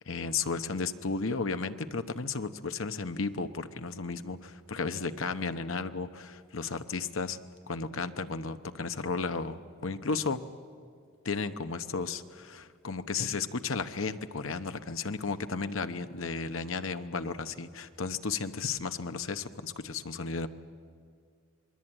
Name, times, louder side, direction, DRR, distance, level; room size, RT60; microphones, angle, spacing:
voice 1, 0.1-7.4 7.7-10.4 11.2-20.5, left 4 dB, 70° left, 10 dB, 1.0 m, -34 dB
26.5 x 21.0 x 8.9 m, 2.2 s
head